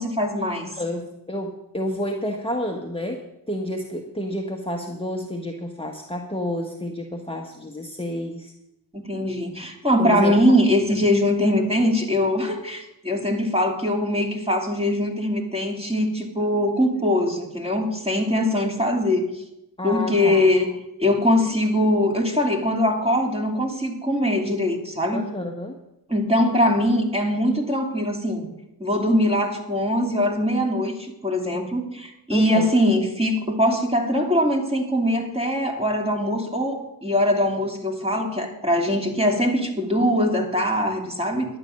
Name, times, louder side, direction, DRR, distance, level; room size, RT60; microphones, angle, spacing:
voice 1, 0.0-0.7 8.9-19.3 19.8-20.7 21.0-25.3 26.1-28.5 28.8-41.5, left 1 dB, 15° right, 1 dB, 2.8 m, -22 dB
voice 2, 0.7-8.5 10.0-10.3 19.8-20.4 25.1-25.8 32.3-32.7, left 1 dB, 15° left, 1 dB, 1.4 m, -30 dB
11.5 x 9.0 x 6.5 m, 0.86 s
cardioid pair, 60°, 43 cm